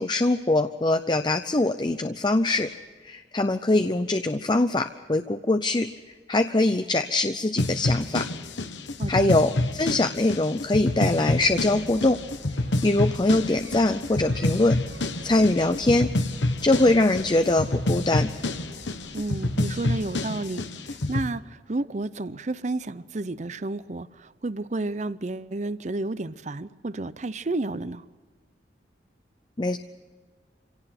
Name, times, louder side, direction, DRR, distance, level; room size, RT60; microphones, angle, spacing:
voice 1, 0.0-2.7 3.0-5.9 6.3-8.3 9.1-12.2 12.5-14.8 15.2-16.1 16.6-18.3 29.6-29.8, left 2 dB, 25° left, 0.6 m, -23 dB
sound 1, 7.6-21.3, left 2 dB, 90° left, 1.3 m, -28 dB
voice 2, 9.0-9.4 19.1-28.0, right 2 dB, 40° right, 0.6 m, -31 dB
sound 2, 11.4-20.2, right 2 dB, 80° right, 1.3 m, -46 dB
26.5 x 17.5 x 6.0 m
head